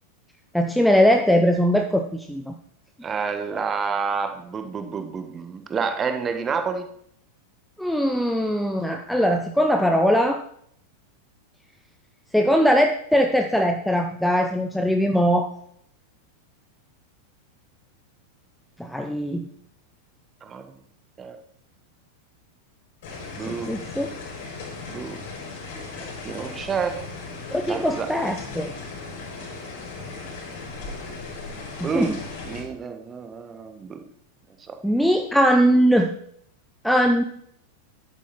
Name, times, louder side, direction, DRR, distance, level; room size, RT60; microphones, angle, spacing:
voice 1, 0.5-2.5 3.5-3.7 7.8-10.4 12.3-15.5 18.8-19.5 23.5-24.1 27.5-28.7 31.8-32.2 34.8-36.1 36.8-37.2, equal, ahead, 4 dB, 0.7 m, -21 dB
voice 2, 3.0-6.9 20.4-20.7 21.2-21.4 23.4-23.8 24.9-25.2 26.0-27.0 27.7-28.1 31.8-32.2 32.5-34.0 34.7-34.8, right 5 dB, 20° right, 8 dB, 1.5 m, -29 dB
sound 1, 23.0-32.6, left 3 dB, 55° left, 4.5 m, -37 dB
10.5 x 8.6 x 4.4 m, 0.67 s
figure-of-eight pair, 90°, 0 cm